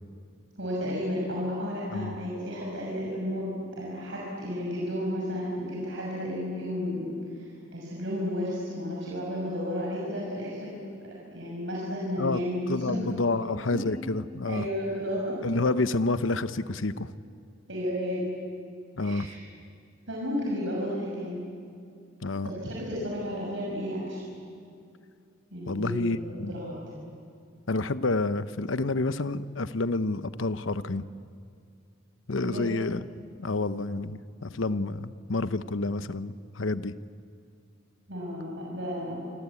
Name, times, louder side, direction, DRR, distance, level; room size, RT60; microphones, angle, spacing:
voice 1, 0.6-10.8 11.3-13.0 13.3-13.4 13.7-13.8 14.5-15.3 17.7-18.3 19.0-19.4 20.1-21.4 22.4-24.2 25.5-26.8 32.4-32.6 38.1-39.2, equal, 65° right, -4 dB, 6.5 m, -32 dB
voice 2, 12.7-14.7 15.4-17.1 19.0-19.3 22.2-22.5 25.7-26.5 27.7-31.1 32.3-33.0 33.4-36.9, left 3 dB, 80° left, 13 dB, 0.9 m, -29 dB
27.5 x 25.5 x 8.5 m, 2.4 s
head